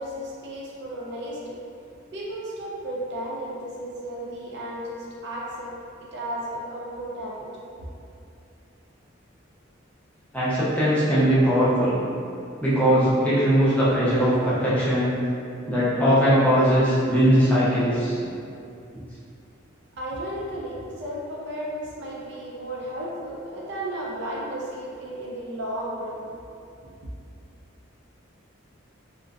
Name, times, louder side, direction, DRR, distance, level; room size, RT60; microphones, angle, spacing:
voice 1, 0.0-1.6 2.1-5.7 6.1-7.5 7.8-7.9 20.0-26.2 26.8-26.9, right 1 dB, 60° right, -5 dB, 0.4 m, -34 dB
voice 2, 10.3-12.0 12.6-15.1 15.7-18.2, equal, 5° left, -11 dB, 0.5 m, -20 dB
2.5 x 2.1 x 2.4 m, 2.6 s
head